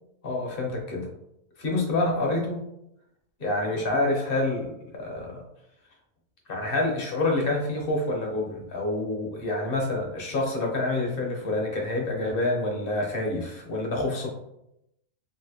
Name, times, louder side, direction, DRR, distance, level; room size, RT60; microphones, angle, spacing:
voice 1, 0.2-1.1 1.6-2.6 3.4-4.7 4.9-5.4 6.5-14.3, left 2 dB, 50° left, -1 dB, 0.9 m, -27 dB
3.1 x 2.6 x 2.8 m, 0.81 s
omnidirectional pair, 1.4 m